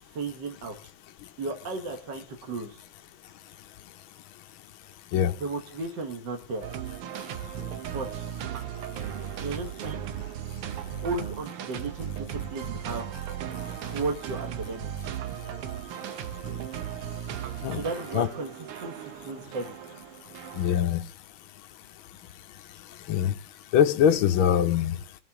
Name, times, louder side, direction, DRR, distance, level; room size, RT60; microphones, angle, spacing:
voice 1, 0.1-0.8 1.4-2.8 5.4-6.6 7.9-8.3 9.4-10.3 11.0-13.0 13.8-15.1 17.7-19.7, right 3 dB, 45° right, 1.7 m, -35 dB
sound 1, 6.6-20.9, right 9 dB, 70° right, 1.3 m, -36 dB
voice 2, 20.6-21.0 23.1-23.3 23.7-25.0, left 9 dB, 70° left, 1.2 m, -22 dB
22.5 x 7.5 x 3.7 m
omnidirectional pair, 3.4 m